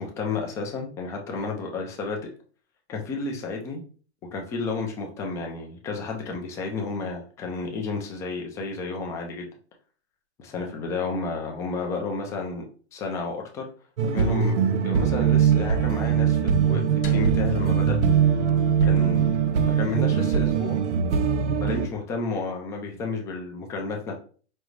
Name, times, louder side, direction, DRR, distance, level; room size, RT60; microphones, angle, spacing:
voice 1, 0.0-2.3 2.9-3.8 4.3-9.5 10.4-12.6 12.9-13.7 14.1-14.5 14.8-18.0 18.8-19.3 19.6-20.8 21.6-24.2, left 4 dB, 10° left, 1 dB, 0.4 m, -31 dB
sound 1, 14.0-21.9, right 8 dB, 85° right, 0.6 m, -22 dB
sound 2, 17.0-21.4, left 2 dB, 50° left, 0.9 m, -35 dB
5.2 x 2.3 x 3.1 m, 0.40 s
hypercardioid pair, 140°, 34 cm